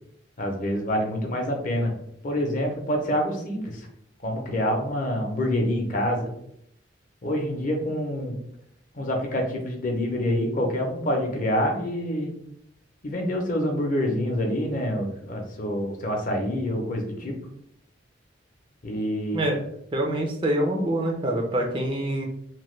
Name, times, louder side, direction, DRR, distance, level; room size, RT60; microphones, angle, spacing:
voice 1, 0.4-1.9 2.2-3.9 4.2-6.3 7.2-8.3 8.9-12.3 13.0-17.3 18.8-19.5, equal, 40° left, 1 dB, 0.6 m, -26 dB
voice 2, 19.9-22.3, right 1 dB, 25° right, 1 dB, 0.4 m, -25 dB
2.9 x 2.2 x 3.1 m, 0.72 s
head